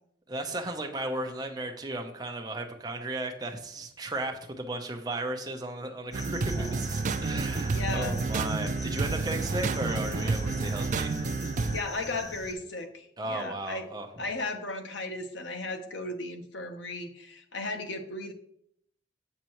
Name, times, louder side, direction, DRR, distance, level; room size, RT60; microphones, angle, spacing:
voice 1, 0.3-11.2 13.2-14.1, right 2 dB, 20° right, 3 dB, 0.7 m, -35 dB
sound 1, 6.1-12.5, left 1 dB, 20° left, 0.8 m, -41 dB
sound 2, 6.1-11.8, right 4 dB, 45° right, 0.4 m, -30 dB
voice 2, 7.7-8.2 11.7-13.9 14.2-18.3, left 2 dB, 85° left, 5 dB, 0.9 m, -35 dB
7.4 x 6.7 x 3.0 m, 0.72 s
head